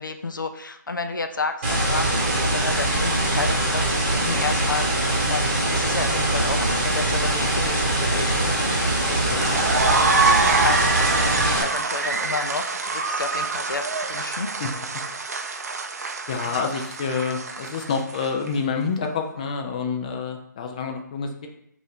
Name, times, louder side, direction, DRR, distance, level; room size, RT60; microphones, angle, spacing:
voice 1, 0.0-8.4 8.8-9.2 9.8-14.5 16.4-16.7, left 4 dB, 80° left, 7 dB, 0.5 m, -31 dB
sound 1, 1.6-11.6, right 1 dB, 35° right, 1.4 m, -23 dB
sound 2, 9.1-18.5, right 3 dB, 50° right, 0.5 m, -25 dB
voice 2, 9.3-9.7 14.6-14.7 16.3-21.5, left 5 dB, 20° left, 3 dB, 0.4 m, -28 dB
5.4 x 2.6 x 3.5 m, 0.73 s
figure-of-eight pair, 150°, 11 cm